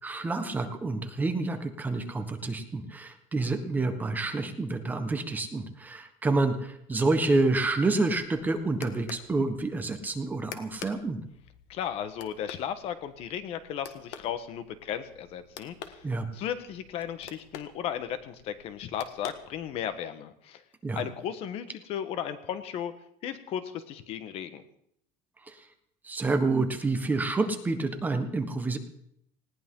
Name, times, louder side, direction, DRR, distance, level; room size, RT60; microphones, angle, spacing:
voice 1, 0.0-11.2 16.0-16.3 20.8-21.0 25.4-25.7 26.0-28.8, right 3 dB, 15° right, 6 dB, 1.3 m, -28 dB
sound 1, 8.1-20.0, left 9 dB, 75° left, 1.7 m, -48 dB
voice 2, 11.7-16.0 16.3-20.6 20.9-22.9 23.2-24.6, left 9 dB, 50° left, 11 dB, 1.4 m, -35 dB
19.5 x 18.0 x 3.8 m, 0.72 s
cardioid pair, 160°, 13 cm